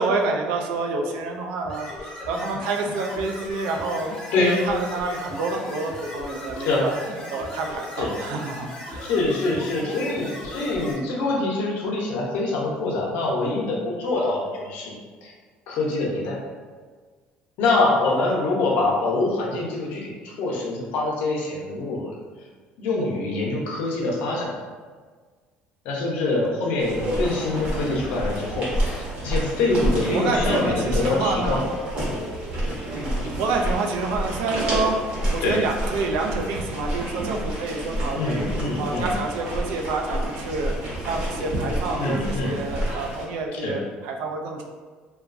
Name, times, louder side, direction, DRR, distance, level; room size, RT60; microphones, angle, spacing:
voice 1, 0.0-4.1 4.4-6.9 7.3-9.1 18.0-18.4 26.3-26.4 30.1-31.6 32.9-35.0 35.3-38.4 38.8-40.7 41.1-44.6, right 3 dB, 85° right, 2 dB, 0.4 m, -28 dB
sound 1, 1.6-10.9, left 1 dB, 20° left, 0.6 m, -37 dB
voice 2, 4.3-4.6 6.7-6.8 8.0-8.1 9.0-14.9 15.2-15.3 15.7-16.4 17.6-22.2 22.8-24.5 25.8-31.6 35.4-35.6 38.1-39.1 42.0-42.6 43.5-43.8, left 2 dB, 65° left, -2 dB, 0.6 m, -25 dB
sound 2, 26.8-43.2, right 1 dB, 40° right, 0.8 m, -29 dB
3.0 x 2.3 x 2.5 m, 1.5 s
cardioid pair, 170°, 3 cm